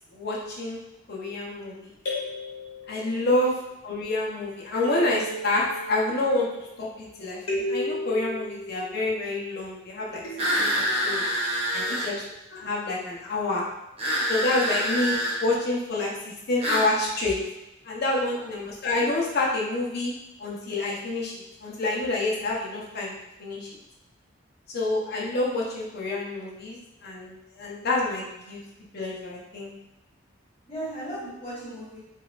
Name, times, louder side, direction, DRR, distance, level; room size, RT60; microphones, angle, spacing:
voice 1, 0.1-0.8 1.1-1.9 2.9-3.5 3.8-10.2 10.6-11.2 11.7-12.2 12.5-13.7 14.3-17.4 17.8-20.1 20.4-23.1 23.4-23.7 24.7-28.6 28.9-29.7, left 2 dB, 55° left, -4 dB, 0.8 m, -28 dB
sound 1, 2.1-3.5 4.8-6.9 7.5-9.6 10.2-11.6, equal, 85° left, 1.0 m, -35 dB
sound 2, 10.4-12.1 14.0-15.4 16.6-16.9, equal, 30° right, 0.7 m, -26 dB
voice 2, 11.7-12.1 14.7-14.8 18.3-18.5 30.6-32.0, right 1 dB, 30° left, -7 dB, 1.1 m, -38 dB
3.9 x 2.4 x 2.4 m, 0.94 s
head